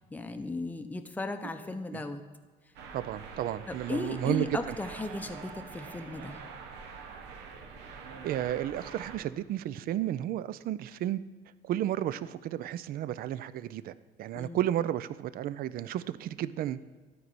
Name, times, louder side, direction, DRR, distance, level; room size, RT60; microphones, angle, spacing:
voice 1, 0.1-2.2 3.7-6.4 14.3-14.6, left 2 dB, 10° left, 7 dB, 0.6 m, -36 dB
sound 1, 2.7-9.2, right 5 dB, 85° right, 1.0 m, -45 dB
voice 2, 2.9-4.7 8.2-11.2 11.7-13.9 14.2-17.0, right 12 dB, 60° right, 16 dB, 0.4 m, -32 dB
12.0 x 4.6 x 4.1 m, 1.5 s
cardioid pair, 110°, 17 cm